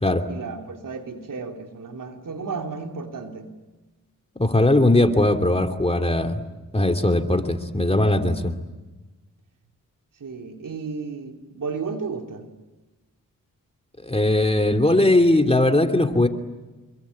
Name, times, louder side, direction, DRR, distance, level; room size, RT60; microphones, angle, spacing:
voice 1, 0.3-3.5 10.2-12.5, right 4 dB, 70° right, 3 dB, 3.5 m, -33 dB
voice 2, 4.4-6.4 6.7-8.5 14.0-16.3, left 1 dB, 20° left, 6 dB, 2.9 m, -19 dB
28.0 x 22.5 x 8.7 m, 1.2 s
cardioid pair, 50°, 34 cm